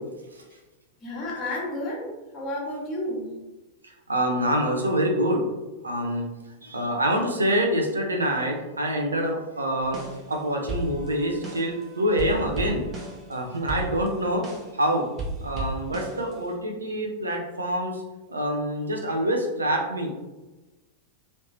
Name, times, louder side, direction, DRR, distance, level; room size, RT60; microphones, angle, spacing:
voice 1, 1.0-3.4, left 1 dB, 30° left, -5 dB, 1.3 m, -31 dB
voice 2, 3.8-5.4 5.8-6.3 6.6-10.0 10.3-14.4 14.7-15.0 15.4-18.0 18.3-20.1, equal, 75° right, 1 dB, 0.6 m, -26 dB
sound 1, 9.8-10.4 10.7-11.8 12.2-14.8 15.2-16.6, right 2 dB, 30° right, 0.8 m, -34 dB
3.2 x 2.8 x 2.9 m, 1.1 s
figure-of-eight pair, 90°, 0 cm